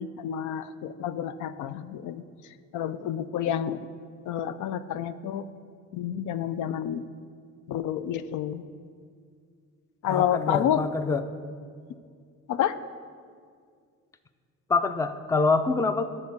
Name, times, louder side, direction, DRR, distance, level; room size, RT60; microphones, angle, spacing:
voice 1, 0.0-3.8 4.3-5.5 5.9-7.0 7.7-8.6 10.0-10.9 12.5-12.8, left 10 dB, 80° left, 13 dB, 0.4 m, -29 dB
voice 2, 10.1-11.2 14.7-16.0, left 4 dB, 10° left, 11 dB, 0.4 m, -25 dB
9.4 x 4.2 x 6.7 m, 2.1 s
cardioid pair, 90°, 30 cm